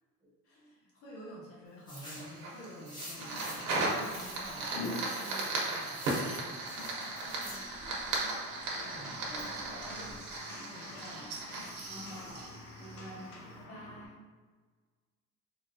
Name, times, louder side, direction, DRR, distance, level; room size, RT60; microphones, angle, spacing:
voice 1, 0.4-4.7 5.6-6.0 7.2-7.4 8.4-10.1 10.5-11.3 13.6-14.2, equal, 50° left, -5 dB, 1.2 m, -49 dB
sound 1, 1.9-2.3 2.9-3.7 4.0-4.4 5.0-6.3 6.7-7.6, equal, 15° left, 1.1 m, -48 dB
Fire, 2.0-13.3, right 2 dB, 75° right, 1.0 m, -37 dB
sound 2, 3.1-14.1, left 2 dB, 75° left, 0.8 m, -47 dB
voice 2, 5.2-5.8 6.6-6.8 7.4-8.0 11.0-11.3 11.9-12.5 12.8-13.3, equal, 20° right, -6 dB, 0.6 m, -49 dB
3.9 x 2.3 x 2.6 m, 1.5 s
cardioid pair, 150°, 30 cm